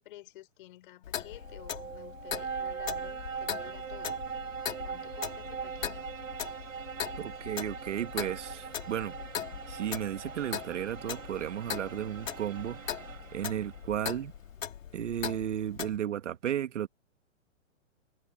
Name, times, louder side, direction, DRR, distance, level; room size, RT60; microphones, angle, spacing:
voice 1, 0.0-4.2 4.8-6.1, left 16 dB, 40° left, 5.7 m, -52 dB
Clock, 1.0-16.0, left 9 dB, 75° left, 1.8 m, -40 dB
sound 1, 1.2-14.0, right 6 dB, 85° right, 4.4 m, -41 dB
sound 2, 3.2-4.6 7.5-8.9 11.7-12.2, right 7 dB, 10° right, 6.2 m, -67 dB
voice 2, 7.2-9.1 9.7-12.8 13.3-14.3 14.9-16.9, right 10 dB, 60° right, 1.6 m, -34 dB
hypercardioid pair, 160°, 40 cm